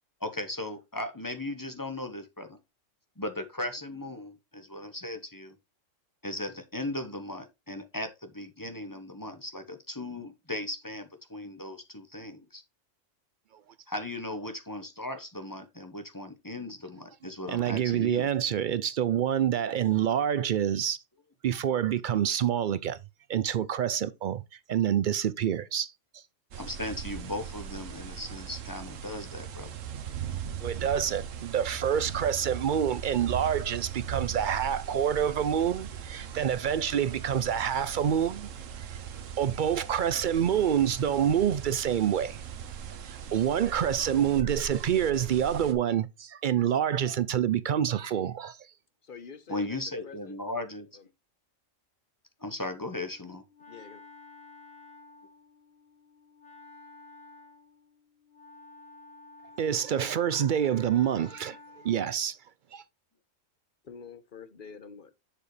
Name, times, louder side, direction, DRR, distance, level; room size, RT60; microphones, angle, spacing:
voice 1, 0.2-2.6 3.2-5.5 6.2-12.6 13.9-18.3 26.6-29.7 49.5-51.0 52.4-53.4, left 1 dB, 15° left, 1.0 m, -37 dB
voice 2, 17.5-21.0 21.4-23.0 23.3-24.4 24.7-25.9 30.6-38.5 38.9-39.0 39.4-42.4 43.0-48.6 59.6-61.6 61.8-62.4 62.7-62.8, right 9 dB, 60° right, 0.5 m, -27 dB
sound 1, 26.5-45.7, right 8 dB, 85° right, 1.2 m, -39 dB
voice 3, 49.0-50.4 50.9-51.1 53.7-54.0 63.8-65.1, left 6 dB, 45° left, 1.0 m, -47 dB
Wind instrument woodwind instrument, 53.0-62.1, left 3 dB, 85° left, 3.2 m, -52 dB
7.3 x 6.8 x 3.2 m
omnidirectional pair, 1.3 m